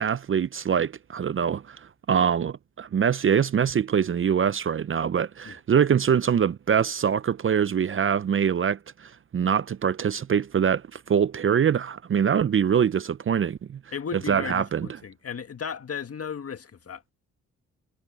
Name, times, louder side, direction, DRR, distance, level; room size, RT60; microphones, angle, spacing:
voice 1, 0.0-1.8 2.1-13.8 14.3-14.9, right 7 dB, 40° right, 0.6 m, -24 dB
voice 2, 13.9-17.1, left 6 dB, 45° left, 1.8 m, -35 dB
supercardioid pair, 65°, 34 cm